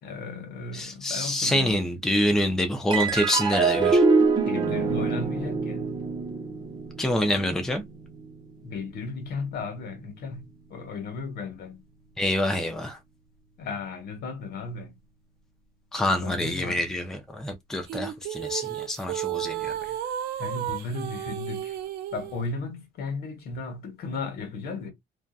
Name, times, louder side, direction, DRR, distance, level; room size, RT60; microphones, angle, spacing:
voice 1, 0.0-1.9 4.4-5.9 8.6-10.4 10.7-11.8 13.6-14.9 16.1-16.8 20.4-21.8 22.1-24.9, left 4 dB, 65° left, 1.1 m, -35 dB
voice 2, 0.7-4.0 7.0-7.8 12.2-13.0 15.9-19.8, left 1 dB, 5° left, 0.5 m, -26 dB
sound 1, 2.9-9.6, right 4 dB, 25° right, 0.8 m, -25 dB
sound 2, 17.9-22.4, right 12 dB, 70° right, 0.5 m, -33 dB
2.7 x 2.3 x 2.3 m
cardioid pair, 110°, 17 cm